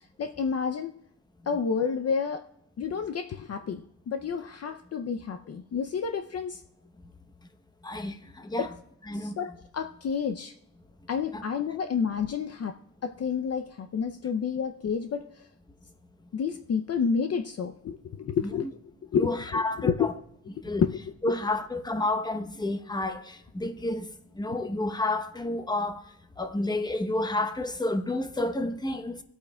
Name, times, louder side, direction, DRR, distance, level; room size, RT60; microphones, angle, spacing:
voice 1, 0.2-1.0 1.5-2.4 2.8-6.6 8.6-8.7 9.2-10.5 11.1-12.8 13.0-15.3 16.3-20.1 20.8-21.0, left 6 dB, 45° left, 0.5 m, -30 dB
voice 2, 7.8-8.7 9.1-9.4 11.3-11.4 18.4-18.7 19.2-20.1 20.6-20.8 21.2-26.0 26.4-29.2, left 2 dB, 10° left, 0.8 m, -30 dB
25.5 x 8.5 x 2.2 m
wide cardioid pair, 125°, 35 cm